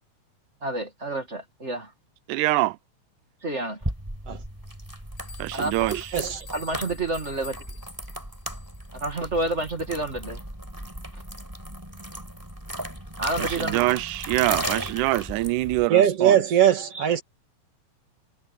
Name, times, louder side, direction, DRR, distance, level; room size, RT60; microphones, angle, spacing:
voice 1, 0.6-1.9 3.4-3.8 5.5-6.0 6.5-7.6 8.9-10.4 13.2-13.8 16.9-17.1, right 2 dB, 25° right, 2.1 m, -29 dB
voice 2, 2.3-2.8 5.4-6.1 13.4-16.4, right 18 dB, 80° right, 2.0 m, -25 dB
sound 1, 3.8-15.9, equal, 5° right, 4.7 m, -36 dB
sound 2, 5.2-8.9, left 5 dB, 60° left, 7.0 m, -46 dB
voice 3, 15.9-17.2, right 10 dB, 55° right, 2.5 m, -20 dB
omnidirectional pair, 3.8 m